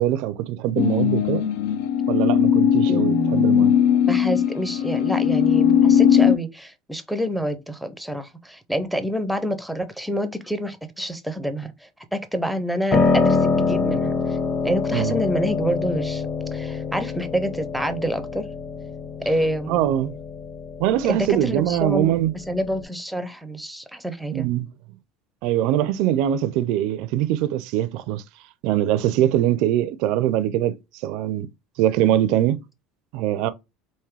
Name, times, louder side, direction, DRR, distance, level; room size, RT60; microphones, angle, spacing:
voice 1, 0.0-1.4 2.1-3.7 14.9-15.2 19.7-20.1 20.8-22.4 24.3-24.7 25.4-28.2 28.6-30.8 31.0-31.5 31.8-32.6 33.1-33.5, right 12 dB, 65° right, 0.4 m, -22 dB
sound 1, 0.8-6.4, left 9 dB, 80° left, 0.5 m, -19 dB
voice 2, 2.9-3.8 4.0-14.4 14.6-18.5 19.3-19.9 21.1-22.2 22.5-24.5, equal, ahead, 0.6 m, -27 dB
Piano, 12.9-22.8, left 4 dB, 35° left, 1.2 m, -25 dB
3.6 x 2.6 x 3.2 m
supercardioid pair, 120°, 0 cm